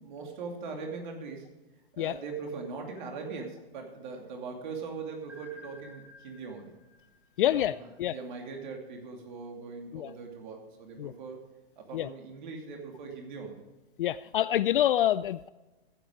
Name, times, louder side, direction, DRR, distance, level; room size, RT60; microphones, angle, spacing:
voice 1, 0.0-1.5 1.9-6.7 7.5-11.5 11.8-13.6, right 4 dB, 50° right, 2 dB, 2.6 m, -41 dB
sound 1, 5.3-8.2, left 2 dB, 5° right, 1.7 m, -54 dB
voice 2, 7.4-8.1 9.9-10.1 11.0-11.1 11.9-12.1 14.0-15.5, left 12 dB, 60° left, 15 dB, 0.4 m, -27 dB
15.0 x 8.1 x 5.0 m, 1.1 s
hypercardioid pair, 150°, 30 cm